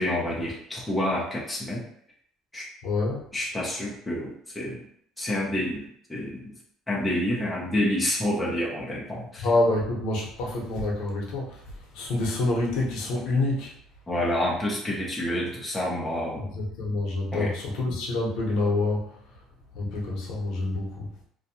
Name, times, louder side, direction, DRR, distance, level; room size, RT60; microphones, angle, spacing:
voice 1, 0.0-1.8 2.5-2.7 3.3-4.8 5.2-6.6 6.9-9.5 14.1-16.5 17.3-17.5, left 1 dB, 5° left, -5 dB, 0.4 m, -28 dB
voice 2, 2.8-3.2 9.4-13.8 16.5-19.1 19.7-21.1, left 2 dB, 60° left, -3 dB, 0.7 m, -27 dB
2.5 x 2.2 x 2.7 m, 0.68 s
cardioid pair, 170°, 0 cm